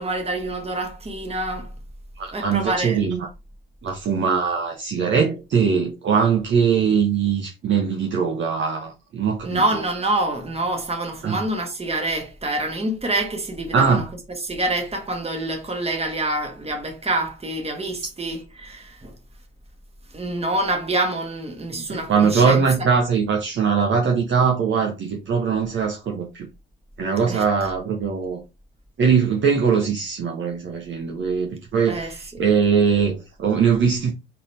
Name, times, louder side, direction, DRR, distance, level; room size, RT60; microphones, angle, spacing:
voice 1, 0.0-1.7 2.3-3.0 9.4-14.0 14.4-19.2 20.1-22.6 27.3-27.4 31.9-32.4, right 2 dB, 20° right, 1.7 m, -26 dB
voice 2, 2.2-3.3 3.8-9.6 11.2-11.4 13.7-14.1 21.7-26.5 27.0-28.4 29.0-34.1, right 6 dB, 40° right, 1.0 m, -21 dB
4.0 x 3.8 x 3.3 m
figure-of-eight pair, 50°, 30 cm